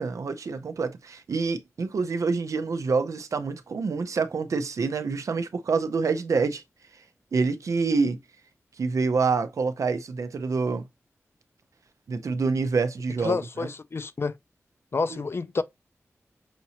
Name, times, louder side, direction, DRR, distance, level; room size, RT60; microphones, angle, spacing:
voice 1, 0.0-6.6 7.3-8.2 8.8-10.9 12.1-13.7 15.1-15.2, right 4 dB, 80° right, 0.5 m, -27 dB
voice 2, 13.2-14.4 14.9-15.6, left 4 dB, 50° left, 0.4 m, -28 dB
5.8 x 2.8 x 2.8 m
wide cardioid pair, 85°, 5 cm